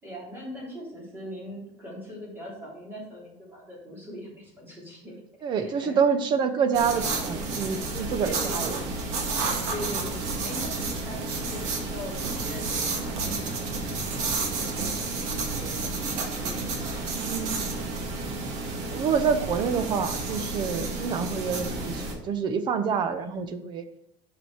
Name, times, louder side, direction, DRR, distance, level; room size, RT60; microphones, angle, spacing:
voice 1, 0.0-5.2 5.6-6.1 8.2-8.8 9.7-13.7 14.0-16.0 16.4-17.4 20.7-21.2 23.0-23.4, equal, 15° right, -5 dB, 3.3 m, -41 dB
voice 2, 5.4-8.7 9.5-9.7 13.1-13.4 17.1-17.6 18.9-23.8, right 6 dB, 35° right, 10 dB, 0.8 m, -27 dB
sound 1, 6.7-22.1, right 3 dB, 65° right, 1.7 m, -31 dB
6.8 x 6.2 x 4.7 m, 0.76 s
cardioid pair, 165°, 13 cm